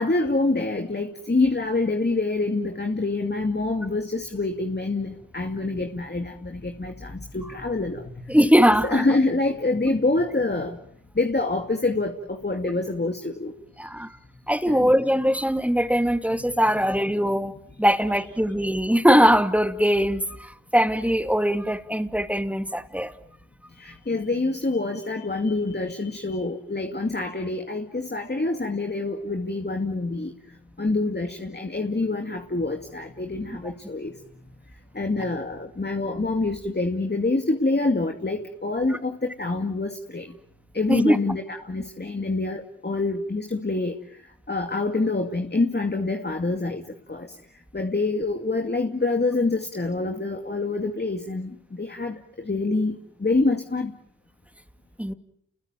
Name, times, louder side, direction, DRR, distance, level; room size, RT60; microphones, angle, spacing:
voice 1, 0.0-8.0 8.8-10.8 11.2-13.5 14.7-14.9 23.8-30.3 30.8-34.1 34.9-40.3 40.7-43.9 44.5-46.8 47.1-47.3 47.7-53.9, left 3 dB, 30° left, 2.4 m, -26 dB
voice 2, 8.3-9.0 13.8-14.1 14.5-23.1 40.9-41.2 55.0-55.1, equal, 5° right, 2.4 m, -21 dB
29.5 x 21.5 x 9.2 m
cardioid pair, 50°, 34 cm